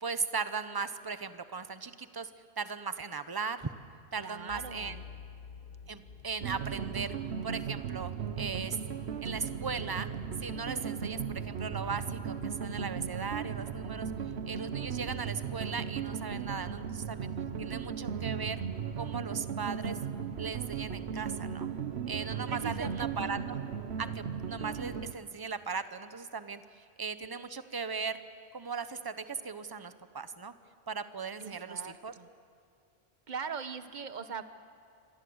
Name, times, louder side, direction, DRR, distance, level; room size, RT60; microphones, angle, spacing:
voice 1, 0.0-2.3 2.6-3.7 4.1-5.0 5.9-7.1 7.4-8.8 9.2-10.1 10.4-14.1 14.5-17.3 17.6-18.6 19.0-20.0 20.4-21.7 22.1-23.6 24.0-28.2 28.5-30.5 30.9-32.1, right 5 dB, 20° right, 11 dB, 0.9 m, -38 dB
voice 2, 4.2-5.0 22.5-23.3 31.4-32.3 33.3-34.4, right 6 dB, 45° right, 10 dB, 1.2 m, -41 dB
sound 1, 4.5-18.9, left 6 dB, 45° left, 1.1 m, -52 dB
sound 2, 6.4-25.1, right 7 dB, 75° right, 1.2 m, -37 dB
28.5 x 24.5 x 8.0 m, 2.5 s
omnidirectional pair, 1.1 m